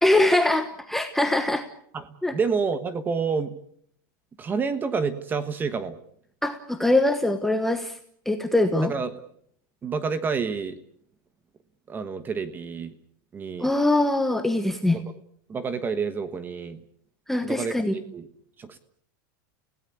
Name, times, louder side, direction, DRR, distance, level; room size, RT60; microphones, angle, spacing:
voice 1, 0.0-1.7 2.2-2.3 6.4-8.0 8.2-8.9 13.6-15.0 17.3-18.0, left 2 dB, 5° left, 6 dB, 1.2 m, -22 dB
voice 2, 1.9-3.5 4.4-6.0 8.8-9.1 9.8-10.8 11.9-12.9 13.3-13.7 14.9-15.1 15.5-16.8 17.4-18.3 18.6-18.8, right 5 dB, 20° right, 12 dB, 1.3 m, -29 dB
29.0 x 17.0 x 8.4 m, 0.69 s
supercardioid pair, 155°, 10 cm